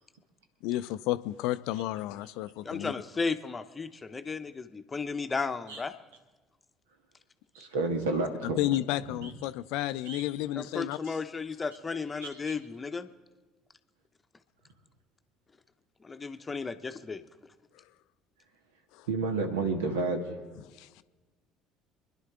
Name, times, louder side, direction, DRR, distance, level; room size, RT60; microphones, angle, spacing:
voice 1, 0.6-2.9 8.6-11.0 20.8-21.0, left 15 dB, 60° left, 14 dB, 0.4 m, -31 dB
voice 2, 2.6-6.0 10.5-13.1 16.0-17.2, left 4 dB, 25° left, 9 dB, 0.9 m, -34 dB
voice 3, 7.5-8.6 9.1-9.3 10.0-10.2 12.2-12.5 19.1-20.4, right 3 dB, 70° right, 6 dB, 1.5 m, -31 dB
25.0 x 11.0 x 3.6 m, 1.3 s
figure-of-eight pair, 55°, 0 cm